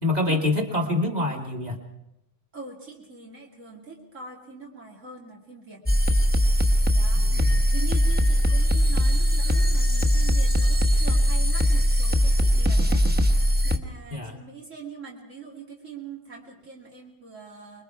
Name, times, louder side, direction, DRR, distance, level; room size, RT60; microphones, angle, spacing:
voice 1, 0.0-1.8 7.1-7.5 14.1-14.3, left 2 dB, 35° right, 3 dB, 2.6 m, -26 dB
voice 2, 2.5-5.9 6.9-7.2 7.7-13.0 13.6-17.8, right 5 dB, 90° right, -2 dB, 3.1 m, -42 dB
sound 1, 5.9-13.8, equal, 10° right, 1.0 m, -20 dB
26.0 x 21.5 x 4.7 m, 0.85 s
omnidirectional pair, 1.3 m